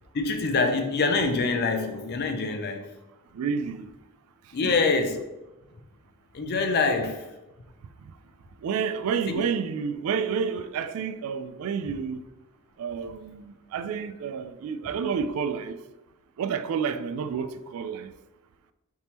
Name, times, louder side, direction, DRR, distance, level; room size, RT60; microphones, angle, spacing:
voice 1, 0.1-2.8 4.5-5.2 6.3-7.2, left 3 dB, 45° left, 0.5 m, -25 dB
voice 2, 3.3-3.9 4.6-4.8 8.6-12.2 12.8-15.7 16.4-18.1, right 6 dB, 70° right, 0.3 m, -30 dB
4.2 x 3.5 x 2.9 m
head